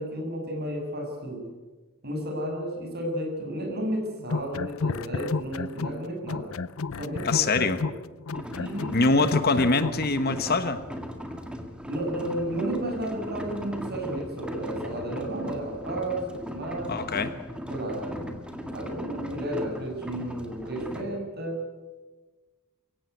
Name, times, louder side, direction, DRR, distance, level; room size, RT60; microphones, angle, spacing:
voice 1, 0.0-1.4 2.0-6.5 7.0-7.5 7.8-7.9 8.6-9.1 11.9-17.0 17.7-18.3 18.7-21.6, right 1 dB, 50° right, 1 dB, 7.0 m, -32 dB
sound 1, 4.2-6.0 6.3-10.0, left 4 dB, 70° left, 0.6 m, -30 dB
voice 2, 7.2-7.8 8.9-10.8 16.9-17.3, left 3 dB, 45° left, 10 dB, 1.3 m, -23 dB
sound 2, 8.3-21.0, equal, 5° right, 2.0 m, -38 dB
24.0 x 17.0 x 9.4 m, 1.3 s
head